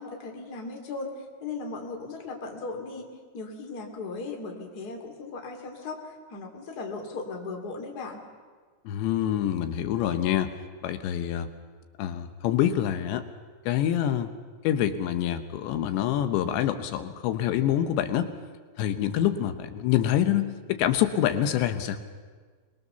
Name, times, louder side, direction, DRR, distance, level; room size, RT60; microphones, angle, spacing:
voice 1, 0.0-8.2, left 3 dB, 30° left, 2 dB, 2.3 m, -37 dB
voice 2, 8.9-10.5 10.8-11.5 12.0-13.2 13.7-14.3 14.6-18.3 18.8-22.0, left 11 dB, 80° left, 9 dB, 3.2 m, -26 dB
24.5 x 21.0 x 6.9 m, 1.5 s
omnidirectional pair, 5.1 m